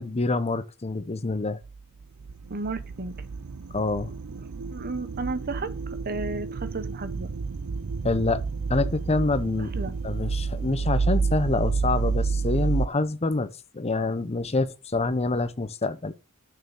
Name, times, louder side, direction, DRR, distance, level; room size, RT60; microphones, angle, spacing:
voice 1, 0.0-1.6 3.7-4.1 8.0-8.4 8.7-9.7 10.0-16.1, left 3 dB, 30° left, 0.7 m, -26 dB
sound 1, 1.6-12.9, right 4 dB, 75° right, 0.5 m, -29 dB
voice 2, 2.5-3.1 4.7-7.3 9.6-10.0, right 3 dB, 45° right, 0.8 m, -33 dB
6.7 x 6.3 x 7.1 m
head